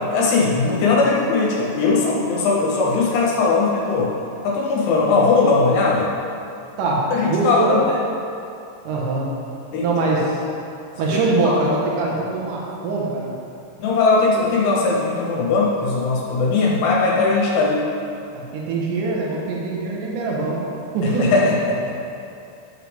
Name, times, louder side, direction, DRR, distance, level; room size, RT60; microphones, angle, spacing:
voice 1, 0.0-4.1 4.4-6.1 7.1-8.0 9.7-9.9 11.5-11.6 13.8-17.8 21.0-22.0, left 3 dB, 75° left, -4 dB, 3.6 m, -19 dB
voice 2, 6.8-7.8 8.8-9.3 9.8-10.4 11.0-13.3 18.3-20.6 20.9-21.3, right 3 dB, 75° right, -3 dB, 1.9 m, -22 dB
13.0 x 6.7 x 3.6 m, 2.6 s
omnidirectional pair, 5.7 m